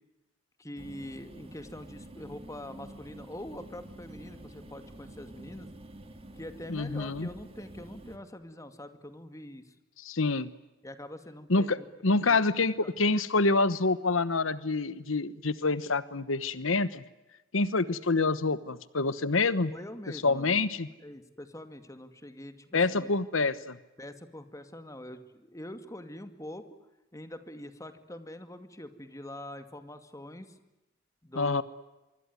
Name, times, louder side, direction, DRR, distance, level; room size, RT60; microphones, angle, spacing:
voice 1, 0.6-5.7 6.3-9.7 10.8-12.9 19.7-20.7 21.0-23.1 24.0-26.8 27.1-30.6 31.2-31.6, left 1 dB, 15° left, 9 dB, 2.2 m, -44 dB
sound 1, 0.8-8.2, right 1 dB, 30° right, 3.0 m, -48 dB
voice 2, 6.7-7.3 10.0-10.5 11.5-17.0 17.5-19.7 20.2-20.9 22.7-23.8 31.4-31.6, left 3 dB, 90° left, 15 dB, 1.2 m, -27 dB
25.5 x 24.5 x 9.7 m, 1.0 s
head